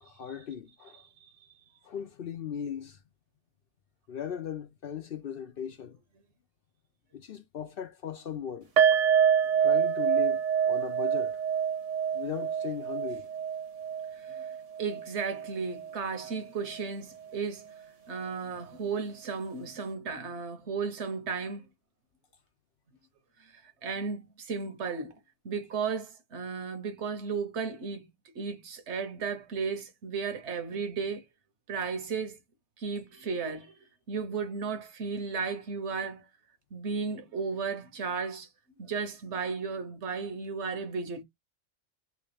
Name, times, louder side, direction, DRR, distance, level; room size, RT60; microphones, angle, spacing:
voice 1, 0.0-1.0 1.8-3.0 4.1-6.0 7.1-8.7 9.6-11.4 12.1-13.3, left 8 dB, 60° left, 0.7 m, -38 dB
voice 2, 1.2-1.5 14.2-14.5 14.8-17.6 18.1-21.7 23.4-25.1 25.4-31.2 31.7-32.4 32.8-33.7 34.1-36.2 36.7-38.5 38.8-41.2, right 5 dB, 70° right, 1.1 m, -34 dB
sound 1, 8.8-16.0 16.2-16.4 16.8-16.9, right 8 dB, 85° right, 1.5 m, -27 dB
3.1 x 3.0 x 3.2 m
omnidirectional pair, 1.2 m